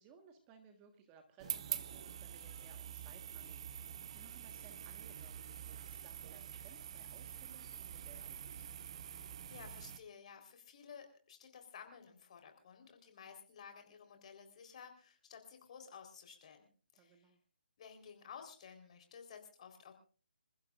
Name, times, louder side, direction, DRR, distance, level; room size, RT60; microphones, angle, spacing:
voice 1, 0.0-5.4 5.8-8.6 16.9-17.4, right 6 dB, 20° right, 6 dB, 1.4 m, -62 dB
sound 1, 1.4-10.0, right 9 dB, 35° right, 0.9 m, -46 dB
voice 2, 9.0-16.7 16.9-17.3 17.8-19.9, left 7 dB, 40° left, 5 dB, 4.0 m, -54 dB
27.5 x 15.0 x 2.5 m, 0.40 s
hypercardioid pair, 160°, 6 cm